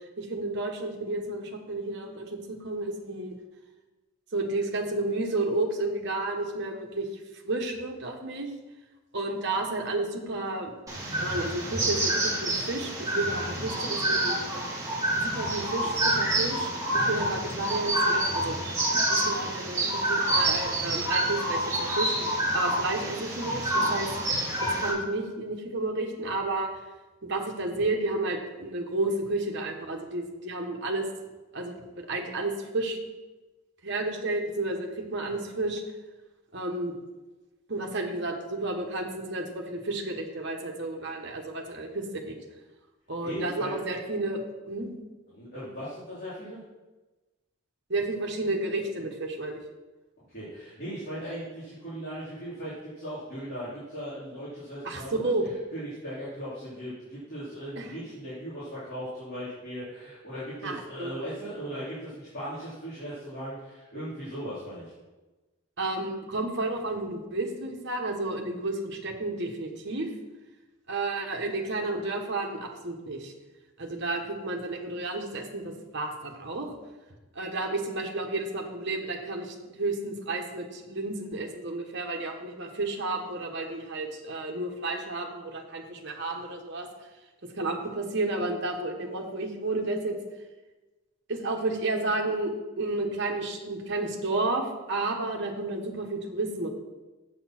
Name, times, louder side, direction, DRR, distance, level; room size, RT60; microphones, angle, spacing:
voice 1, 0.2-3.3 4.3-7.1 7.4-8.5 9.1-10.7 11.2-14.4 15.1-18.6 18.9-22.1 22.5-24.1 24.6-26.7 27.2-31.1 31.5-33.0 33.8-35.8 36.5-36.9 37.7-42.4 43.1-44.9 47.9-49.6 54.8-55.5 57.8-57.9 60.6-61.2 65.8-70.1 70.9-73.3 73.8-76.7 77.3-86.9 87.6-90.2 91.3-96.7, right 2 dB, 55° right, 1 dB, 1.4 m, -31 dB
sound 1, 10.9-24.9, right 1 dB, 15° right, 2.2 m, -28 dB
voice 2, 43.2-43.7 45.3-46.6 50.3-55.3 55.7-64.8, equal, 45° left, -12 dB, 3.2 m, -38 dB
7.9 x 6.9 x 6.1 m, 1.2 s
head